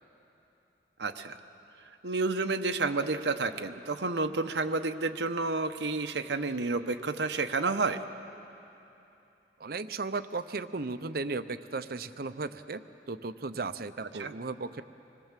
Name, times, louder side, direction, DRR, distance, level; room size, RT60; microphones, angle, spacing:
voice 1, 1.0-1.4 2.0-8.0 14.1-14.3, right 3 dB, 80° right, 7 dB, 0.9 m, -30 dB
voice 2, 9.6-14.8, right 3 dB, 55° right, 12 dB, 0.7 m, -36 dB
26.0 x 21.0 x 7.5 m, 2.9 s
head